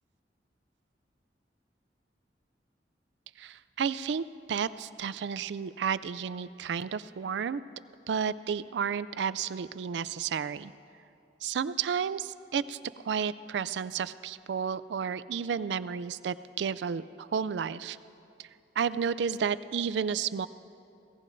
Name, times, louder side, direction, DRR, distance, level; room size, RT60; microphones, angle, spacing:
voice 1, 3.4-7.6 8.1-10.7 11.4-18.0 18.4-18.5 18.8-20.5, right 7 dB, 85° right, 16 dB, 0.4 m, -32 dB
22.5 x 17.5 x 2.6 m, 2.6 s
head